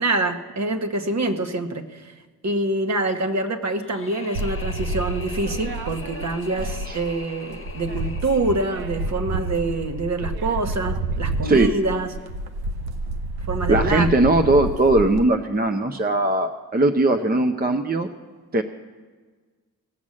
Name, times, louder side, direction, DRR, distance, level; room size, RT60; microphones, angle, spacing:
voice 1, 0.0-2.1 2.4-12.1 13.5-14.1, right 2 dB, 45° right, 6 dB, 1.2 m, -25 dB
sound 1, 3.8-10.8, left 4 dB, 35° left, 1.2 m, -42 dB
sound 2, 4.3-7.2 7.5-15.2, right 2 dB, 90° right, 0.7 m, -29 dB
voice 2, 11.4-11.7 13.7-18.1 18.5-18.6, right 2 dB, 25° right, 6 dB, 0.7 m, -19 dB
18.0 x 6.1 x 7.5 m, 1.4 s
cardioid pair, 60°, 37 cm